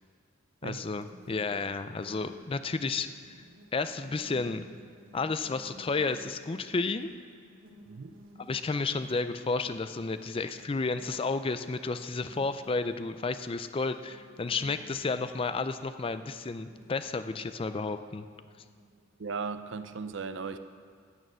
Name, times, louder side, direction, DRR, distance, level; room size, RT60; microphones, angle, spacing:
voice 1, 0.6-3.4 3.7-4.6 5.1-7.1 8.4-18.3, left 3 dB, 25° left, 11 dB, 0.4 m, -32 dB
sound 1, 0.7-20.0, right 1 dB, 80° right, 1.4 m, -55 dB
voice 2, 19.2-20.6, right 5 dB, 60° right, 11 dB, 0.5 m, -37 dB
16.0 x 6.6 x 6.2 m, 2.1 s
head